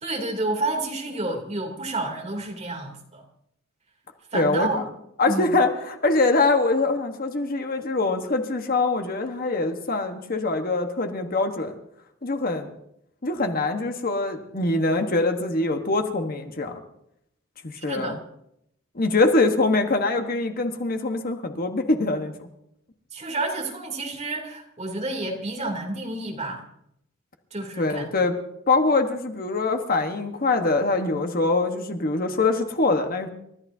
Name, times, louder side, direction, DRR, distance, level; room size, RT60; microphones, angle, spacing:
voice 1, 0.0-3.2 4.3-4.9 5.3-5.6 17.9-18.1 23.1-26.6 27.5-28.1, right 2 dB, 35° right, 1 dB, 3.0 m, -30 dB
voice 2, 4.3-4.8 5.2-11.7 12.2-12.7 13.2-16.8 17.6-18.2 18.9-22.3 27.8-28.4 28.7-33.3, left 3 dB, 45° left, 5 dB, 1.3 m, -23 dB
29.5 x 14.0 x 2.8 m, 0.76 s
head